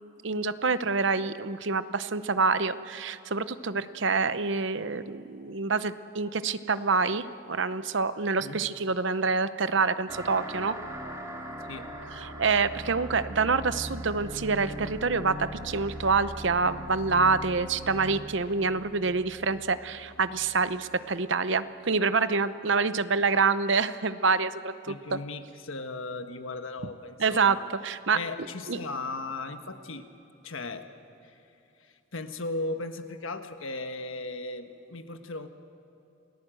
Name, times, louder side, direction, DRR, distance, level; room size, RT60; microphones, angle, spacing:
voice 1, 0.2-10.7 12.2-25.2 27.2-27.6 27.8-28.2 28.7-28.8, right 4 dB, 60° right, 13 dB, 0.8 m, -27 dB
sound 1, 10.1-21.1, right 1 dB, 15° right, 2.6 m, -40 dB
voice 2, 24.9-27.6 28.1-30.1 30.4-30.9 31.2-31.4 31.8-35.5, left 2 dB, 75° left, 7 dB, 1.3 m, -37 dB
28.0 x 18.0 x 7.8 m, 2.8 s
head